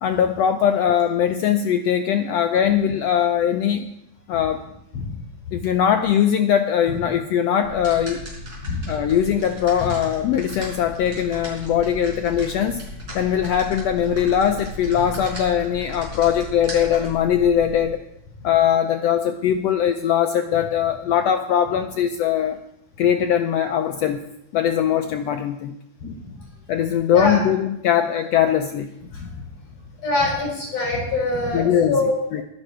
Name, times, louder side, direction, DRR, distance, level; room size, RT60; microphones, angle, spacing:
voice 1, 0.0-3.9 4.3-4.6 5.5-8.2 8.9-12.8 13.1-18.0 18.4-22.6 23.0-25.8 26.7-28.9 31.5-32.4, left 9 dB, 75° left, 7 dB, 1.5 m, -21 dB
sound 1, 7.6-17.9, left 1 dB, 30° right, 5.2 m, -36 dB
voice 2, 30.0-32.2, left 2 dB, 55° left, -3 dB, 7.7 m, -23 dB
15.5 x 12.0 x 4.5 m, 0.83 s
omnidirectional pair, 3.5 m